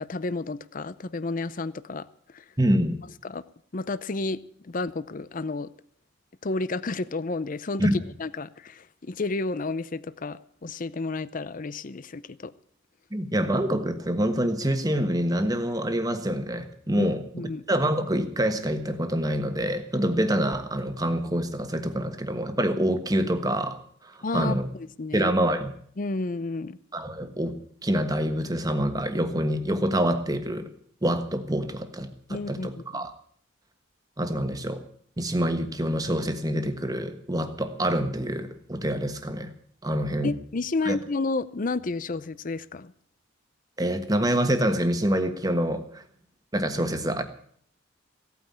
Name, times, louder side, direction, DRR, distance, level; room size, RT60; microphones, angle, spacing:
voice 1, 0.0-2.5 3.2-3.4 3.7-5.7 6.4-12.5 17.0-17.6 24.2-25.3 26.0-26.8 32.3-33.0 40.2-42.9, left 3 dB, 40° left, 16 dB, 0.6 m, -31 dB
voice 2, 2.6-3.0 7.8-8.0 13.1-17.2 17.7-24.7 25.1-25.7 26.9-27.5 27.8-30.7 31.0-33.1 34.2-34.8 35.2-39.5 39.8-40.3 40.8-41.0 43.8-46.0 46.5-47.2, right 1 dB, 20° right, 8 dB, 1.4 m, -26 dB
16.5 x 9.3 x 8.7 m, 0.62 s
head